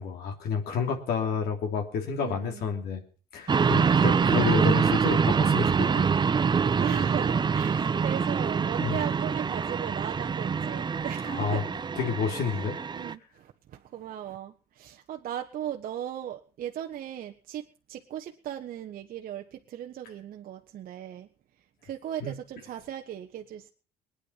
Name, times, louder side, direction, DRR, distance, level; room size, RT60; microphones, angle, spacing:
voice 1, 0.0-3.0 3.3-6.1 8.8-9.0 11.3-11.6 12.0-12.8 22.2-22.3, left 6 dB, 65° left, 3 dB, 3.2 m, -30 dB
voice 2, 2.2-2.7 3.8-4.3 6.7-11.6 12.3-12.6 12.9-21.3 21.8-23.7, right 11 dB, 55° right, 3 dB, 1.3 m, -38 dB
sound 1, 3.5-13.1, right 6 dB, 25° right, 0.7 m, -25 dB
20.5 x 10.0 x 5.7 m, 0.40 s
supercardioid pair, 75°, 17 cm